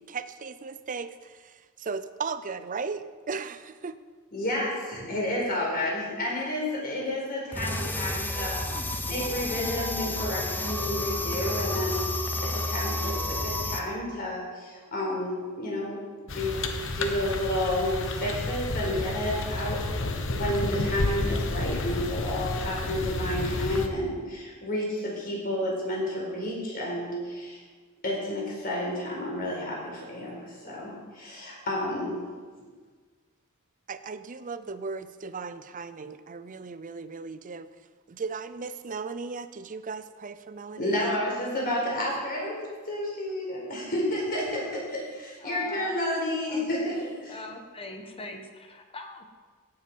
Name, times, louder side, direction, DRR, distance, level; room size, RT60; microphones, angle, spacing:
voice 1, 0.0-4.0 33.9-37.7 38.1-41.2, right 4 dB, 40° right, 13 dB, 0.6 m, -36 dB
voice 2, 4.3-16.0 16.3-16.6 16.9-19.8 20.3-27.6 28.0-32.2 40.8-47.4, left 1 dB, 45° left, -3 dB, 4.6 m, -31 dB
sound 1, 7.5-13.8, left 1 dB, 10° left, 0.8 m, -31 dB
sound 2, 16.3-23.9, left 2 dB, 65° left, 1.1 m, -31 dB
voice 3, 45.4-45.9 46.5-46.7 47.3-49.2, left 2 dB, 25° left, 4 dB, 1.3 m, -41 dB
16.5 x 7.8 x 5.6 m, 1.5 s
head